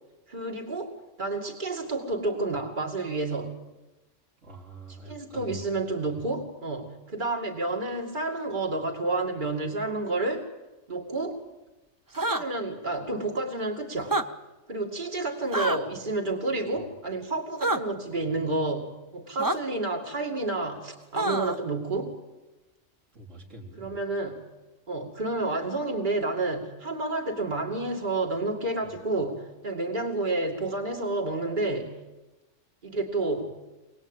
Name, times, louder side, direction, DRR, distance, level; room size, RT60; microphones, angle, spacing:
voice 1, 0.3-0.9 1.2-3.5 5.0-10.5 10.9-11.4 12.1-14.1 14.7-22.2 23.8-24.4 24.9-31.9 32.8-33.5, right 2 dB, 40° right, 1 dB, 2.6 m, -30 dB
voice 2, 4.4-5.6 6.1-6.2 16.7-16.8 23.1-24.0, right 2 dB, 90° right, -4 dB, 4.2 m, -44 dB
sound 1, 12.1-12.4 14.0-14.3 15.5-15.8 17.6-17.8 19.4-19.6 21.2-21.6, right 2 dB, 20° right, 0.8 m, -26 dB
24.0 x 19.5 x 9.0 m, 1.1 s
omnidirectional pair, 1.3 m